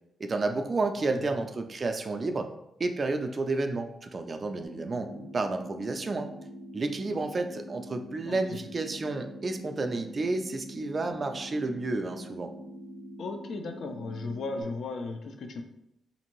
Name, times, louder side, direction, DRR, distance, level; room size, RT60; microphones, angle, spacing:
voice 1, 0.2-2.5 2.8-6.3 6.7-12.5, right 3 dB, 35° right, 6 dB, 0.3 m, -31 dB
sound 1, 4.6-14.6, equal, 15° left, 0.5 m, -44 dB
voice 2, 8.3-8.6 13.2-15.6, left 3 dB, 70° left, 5 dB, 0.4 m, -36 dB
2.6 x 2.5 x 3.0 m, 0.81 s
cardioid pair, 120°, 0 cm